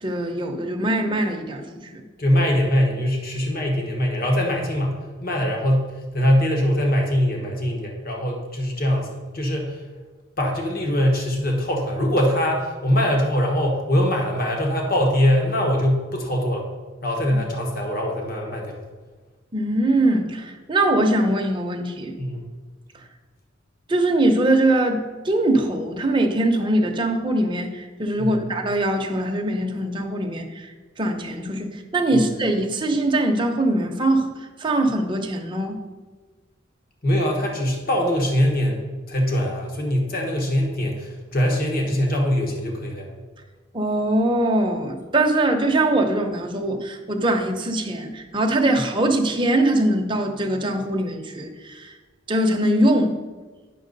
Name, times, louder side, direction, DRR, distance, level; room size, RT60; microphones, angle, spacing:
voice 1, 0.0-1.6 1.9-2.0 19.5-22.1 23.9-30.7 31.0-34.3 34.6-35.8 43.7-51.9 52.3-53.2, right 1 dB, 25° right, 3 dB, 0.8 m, -22 dB
voice 2, 2.2-9.8 10.4-16.7 17.0-18.8 22.2-22.5 28.2-28.4 32.1-32.3 37.0-43.1, equal, 45° left, 0 dB, 1.3 m, -22 dB
9.1 x 6.0 x 4.0 m, 1.3 s
head